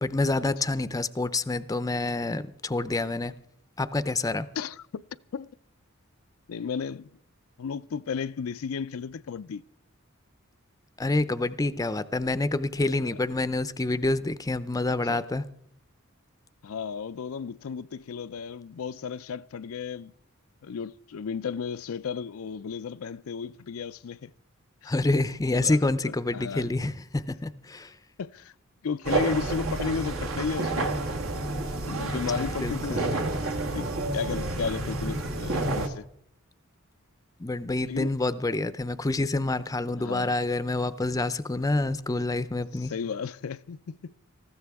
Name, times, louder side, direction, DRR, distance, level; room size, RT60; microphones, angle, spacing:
voice 1, 0.0-3.3 3.8-4.5 11.0-15.4 24.9-27.9 32.1-33.2 37.4-42.9, left 2 dB, 15° left, 0.5 m, -27 dB
voice 2, 4.6-5.0 5.3-5.5 6.5-7.1 7.6-9.6 13.0-13.1 15.1-15.2 16.6-20.1 20.6-24.3 24.8-24.9 25.5-26.7 28.2-28.5 28.8-30.9 31.8-33.9 34.1-36.0 37.8-38.1 40.0-40.3 42.7-44.2, left 6 dB, 90° left, 0.4 m, -34 dB
sound 1, 29.0-35.9, right 2 dB, 75° right, 1.5 m, -29 dB
19.5 x 14.5 x 3.5 m
head